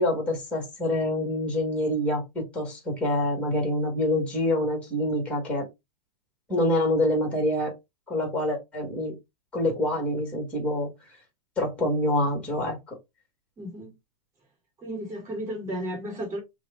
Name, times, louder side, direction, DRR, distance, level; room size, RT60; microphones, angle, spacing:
voice 1, 0.0-5.7 6.5-7.7 8.1-9.1 9.5-10.9 11.6-13.0, left 1 dB, 5° left, 1.7 m, -26 dB
voice 2, 13.6-13.9 14.8-16.4, equal, 15° right, 2.6 m, -33 dB
5.9 x 2.4 x 3.4 m
hypercardioid pair, 150°, 21 cm